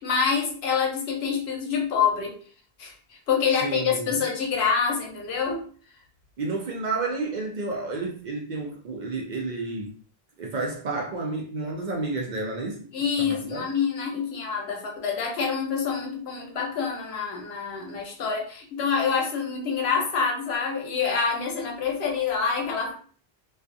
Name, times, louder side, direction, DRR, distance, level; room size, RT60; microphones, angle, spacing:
voice 1, 0.0-2.3 2.8-5.6 12.9-22.9, left 6 dB, 85° left, 0.9 m, -26 dB
voice 2, 3.6-4.1 6.4-9.9 10.4-12.9 13.2-13.8, right 3 dB, 55° right, 0.6 m, -31 dB
2.3 x 2.3 x 2.5 m
omnidirectional pair, 1.0 m